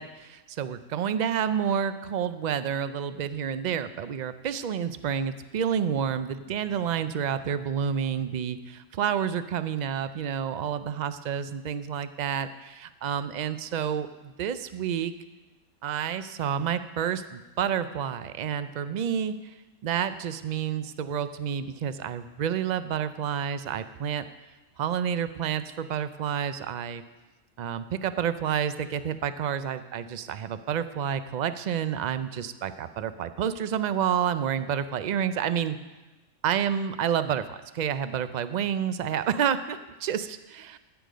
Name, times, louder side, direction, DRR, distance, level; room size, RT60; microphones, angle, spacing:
voice 1, 0.0-15.1 15.8-19.5 19.8-24.2 24.8-27.0 27.6-35.8 36.4-40.8, right 8 dB, 60° right, 12 dB, 0.4 m, -29 dB
15.5 x 7.1 x 5.1 m, 1.1 s
omnidirectional pair, 1.3 m